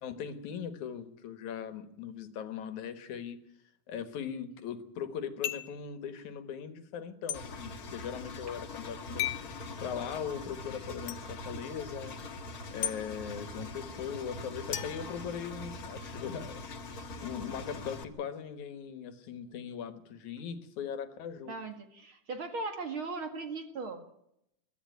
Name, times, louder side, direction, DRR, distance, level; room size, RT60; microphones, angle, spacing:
voice 1, 0.0-3.4 3.9-9.3 9.8-12.2 12.7-16.6 17.2-21.5, left 7 dB, 70° left, 10 dB, 2.7 m, -39 dB
sound 1, 5.4-5.8 7.3-7.4 9.2-9.5 11.1-11.2 12.8-13.0 14.7-15.8, left 12 dB, 90° left, 2.6 m, -35 dB
Engine, 7.3-18.0, left 2 dB, 40° left, 1.4 m, -43 dB
voice 2, 21.5-24.0, right 3 dB, 45° right, 6 dB, 2.5 m, -38 dB
22.5 x 13.5 x 9.2 m, 0.77 s
omnidirectional pair, 3.6 m